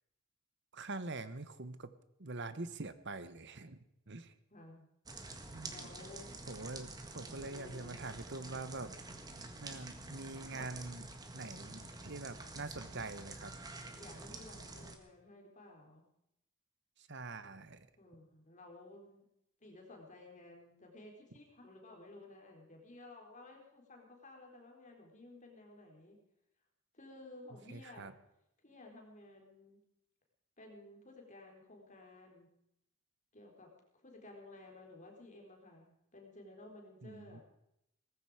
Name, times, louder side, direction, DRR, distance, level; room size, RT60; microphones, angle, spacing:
voice 1, 0.7-1.9 2.2-4.3 5.5-5.9 6.5-8.9 9.6-13.5 17.0-17.9 27.7-28.1 37.0-37.4, right 3 dB, 50° right, 12 dB, 1.2 m, -45 dB
voice 2, 4.5-4.9 5.6-6.3 7.2-8.0 13.7-16.1 18.0-19.2 19.6-26.2 26.9-28.1 28.6-29.8 30.6-32.5 33.3-37.4, left 2 dB, 35° left, 1 dB, 4.0 m, -55 dB
sound 1, 5.1-15.0, right 2 dB, 15° right, 1.7 m, -48 dB
18.5 x 15.0 x 5.0 m, 0.79 s
head